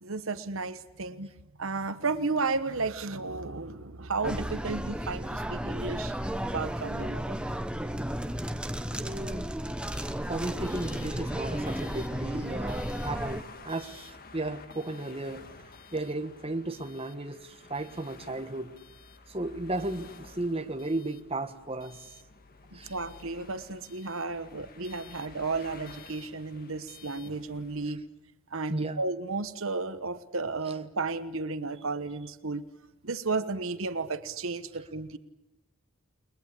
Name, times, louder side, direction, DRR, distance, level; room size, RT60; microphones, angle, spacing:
voice 1, 0.0-1.3 1.6-6.1 6.5-7.4 22.7-28.0 28.5-32.6 33.0-35.2, right 3 dB, 65° right, 11 dB, 1.2 m, -33 dB
sound 1, 4.2-13.4, equal, 5° right, 0.9 m, -34 dB
voice 2, 8.9-9.5 10.3-15.5 15.9-18.7 19.3-22.1 22.7-22.9 27.8-27.9 28.7-29.0, right 2 dB, 25° right, 7 dB, 1.4 m, -34 dB
sound 2, 9.9-27.9, left 4 dB, 40° left, 1.7 m, -51 dB
30.0 x 21.0 x 8.4 m, 0.99 s
head